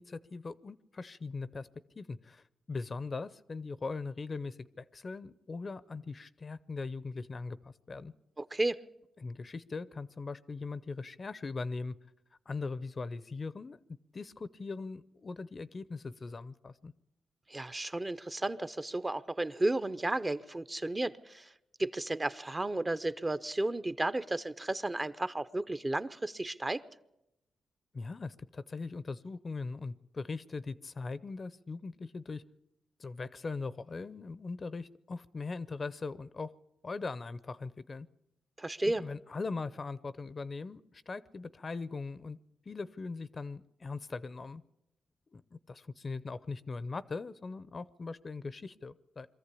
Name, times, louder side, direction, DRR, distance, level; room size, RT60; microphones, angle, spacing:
voice 1, 0.0-1.7 2.0-8.1 9.2-11.9 12.5-13.8 14.1-16.9 27.9-32.4 33.0-36.5 36.8-38.1 38.8-42.4 42.7-44.6 45.3-49.3, left 4 dB, 40° left, 17 dB, 0.6 m, -40 dB
voice 2, 8.4-8.8 17.5-21.5 21.8-26.8 38.6-39.0, right 2 dB, 25° right, 13 dB, 0.8 m, -33 dB
23.0 x 14.0 x 8.4 m, 0.90 s
cardioid pair, 75°, 0 cm